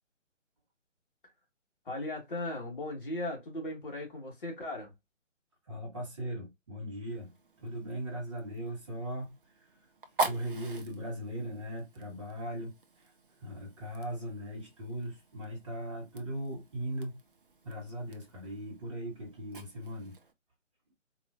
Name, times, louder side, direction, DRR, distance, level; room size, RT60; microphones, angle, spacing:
voice 1, 1.8-4.9, left 1 dB, 45° left, 1.5 m, -37 dB
voice 2, 5.6-7.3 7.6-9.9 10.2-17.2 17.6-20.1, equal, 25° right, 1.2 m, -39 dB
Fire, 7.1-20.3, right 2 dB, 45° right, 0.5 m, -43 dB
4.1 x 2.7 x 2.4 m
hypercardioid pair, 165°, 38 cm